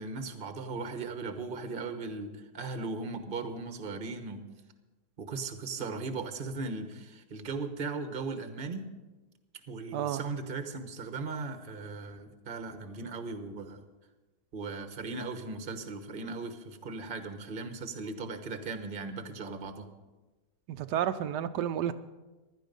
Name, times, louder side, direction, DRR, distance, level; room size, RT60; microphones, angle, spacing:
voice 1, 0.0-4.5 5.2-8.9 9.7-13.8 14.5-19.9, right 3 dB, 35° right, 8 dB, 1.2 m, -38 dB
voice 2, 20.7-21.9, right 10 dB, 85° right, 10 dB, 1.2 m, -31 dB
16.0 x 11.5 x 5.3 m, 1.2 s
omnidirectional pair, 1.8 m